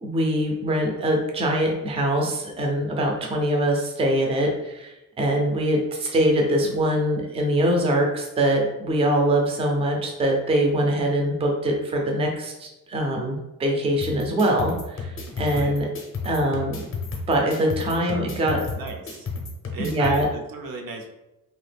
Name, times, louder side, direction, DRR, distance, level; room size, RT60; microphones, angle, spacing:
voice 1, 0.0-15.9 16.2-16.8 17.3-18.6 19.8-20.3, right 1 dB, 15° right, 1 dB, 0.4 m, -23 dB
sound 1, 14.0-20.2, left 4 dB, 35° left, 0.6 m, -33 dB
voice 2, 17.8-18.3 18.8-19.3 19.7-21.1, right 3 dB, 75° right, 2 dB, 0.6 m, -35 dB
2.9 x 2.4 x 3.3 m, 0.93 s
wide cardioid pair, 170°, 36 cm